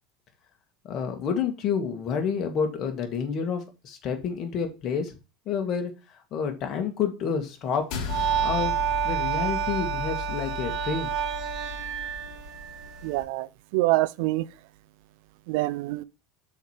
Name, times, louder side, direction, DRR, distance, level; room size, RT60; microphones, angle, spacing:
voice 1, 0.8-5.2 5.5-5.9 6.3-7.9 8.4-8.7 9.0-11.1, left 6 dB, 40° left, 1.8 m, -29 dB
sound 1, 7.9-12.5, left 9 dB, 60° left, 1.7 m, -36 dB
sound 2, 8.0-13.2, right 10 dB, 50° right, 2.1 m, -29 dB
voice 2, 13.0-13.5 13.7-14.4 15.5-16.0, right 19 dB, 70° right, 0.4 m, -25 dB
6.4 x 4.4 x 4.9 m
supercardioid pair, 140°, 0 cm